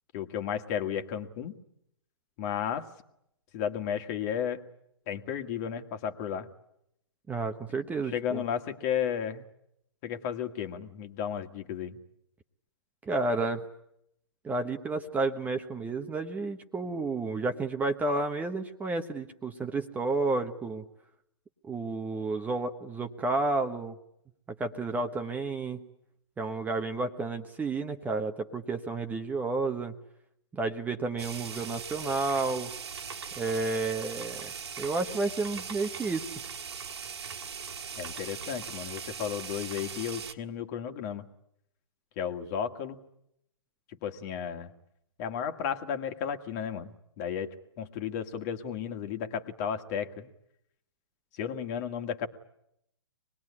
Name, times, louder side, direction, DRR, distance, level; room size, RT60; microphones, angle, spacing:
voice 1, 0.1-1.6 2.4-2.8 3.5-4.6 5.1-6.5 8.1-9.4 10.0-12.0 38.0-41.3 42.2-43.0 44.0-44.7 45.2-50.3 51.3-52.3, left 8 dB, 40° left, 6 dB, 1.9 m, -33 dB
voice 2, 7.3-8.4 13.0-13.6 14.4-20.9 21.6-24.0 24.6-25.8 26.4-29.9 30.5-32.7 33.4-36.2, right 3 dB, 10° right, 7 dB, 1.1 m, -31 dB
sound 1, 31.2-40.3, right 6 dB, 70° right, 2.0 m, -40 dB
25.0 x 20.0 x 9.8 m, 0.79 s
hypercardioid pair, 130°, 15 cm